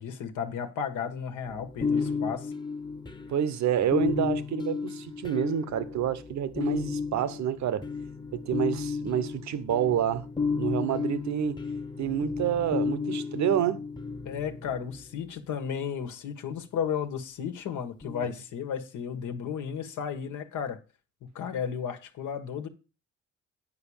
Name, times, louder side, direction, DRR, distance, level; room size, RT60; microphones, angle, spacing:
voice 1, 0.0-2.5 14.2-20.8 21.2-22.7, left 7 dB, 80° left, 1.5 m, -34 dB
sound 1, 1.5-15.2 18.0-18.2, left 5 dB, 15° left, 1.0 m, -33 dB
voice 2, 3.3-7.9 8.3-10.3 10.6-11.6 12.0-13.8 18.2-18.3, right 10 dB, 65° right, 1.0 m, -28 dB
9.5 x 5.0 x 7.1 m
cardioid pair, 90°, 30 cm